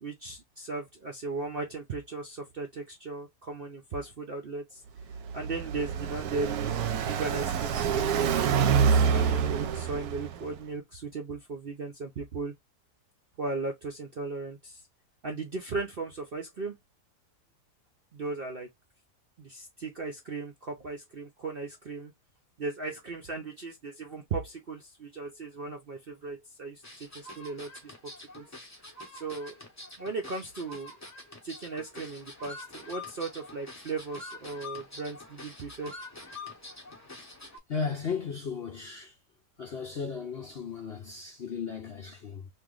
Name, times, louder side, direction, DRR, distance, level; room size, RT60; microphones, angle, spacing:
voice 1, 0.0-4.8 5.3-8.3 8.5-12.5 13.4-14.8 15.2-16.8 18.1-18.7 19.4-22.1 22.6-28.5 29.1-29.6 30.0-30.9 31.4-36.0, right 3 dB, 55° right, 0.6 m, -37 dB
Car passing by, 5.0-10.5, right 7 dB, 70° right, 1.1 m, -27 dB
sound 1, 26.8-37.6, left 2 dB, 15° left, 0.7 m, -45 dB
voice 2, 37.7-39.2 39.6-42.5, left 6 dB, 55° left, 0.7 m, -35 dB
3.0 x 2.8 x 3.7 m
omnidirectional pair, 1.8 m